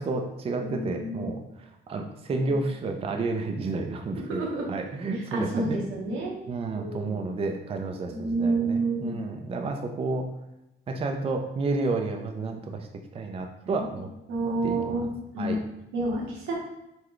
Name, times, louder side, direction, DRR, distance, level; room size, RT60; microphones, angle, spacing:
voice 1, 0.0-4.4 4.7-5.8 6.5-10.3 10.9-12.9 13.1-14.1 14.6-15.1 15.4-15.6, right 3 dB, 30° right, 4 dB, 0.4 m, -31 dB
voice 2, 0.6-1.2 4.2-4.7 5.3-6.4 6.7-7.3 8.1-9.1 12.5-12.6 13.7-13.8 14.3-15.1 15.3-15.6 15.9-16.5, right 2 dB, 85° right, -2 dB, 0.9 m, -29 dB
3.8 x 2.2 x 3.1 m, 0.89 s
cardioid pair, 90°, 20 cm